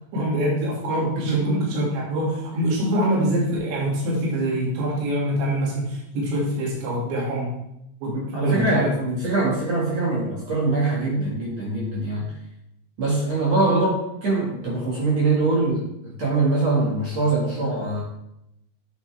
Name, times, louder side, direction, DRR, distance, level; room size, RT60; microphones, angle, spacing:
voice 1, 0.1-7.6 8.0-8.9 13.7-13.9, equal, 70° right, -5 dB, 4.8 m, -25 dB
voice 2, 1.3-1.9 8.1-12.3 13.0-13.9 14.2-18.0, right 3 dB, 50° right, -4 dB, 2.3 m, -23 dB
9.8 x 8.2 x 3.5 m, 0.82 s
omnidirectional pair, 5.4 m